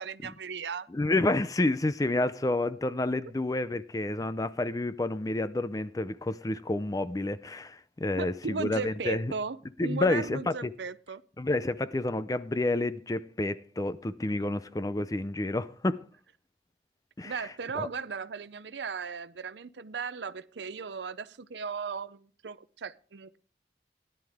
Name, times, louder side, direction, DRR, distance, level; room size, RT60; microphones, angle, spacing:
voice 1, 0.0-0.9 8.2-11.2 17.2-23.4, right 5 dB, 75° right, 0.6 m, -37 dB
voice 2, 0.9-9.3 9.8-10.7 11.4-16.0 17.2-17.4 17.7-17.9, left 2 dB, 20° left, 0.5 m, -29 dB
17.0 x 11.0 x 3.5 m
head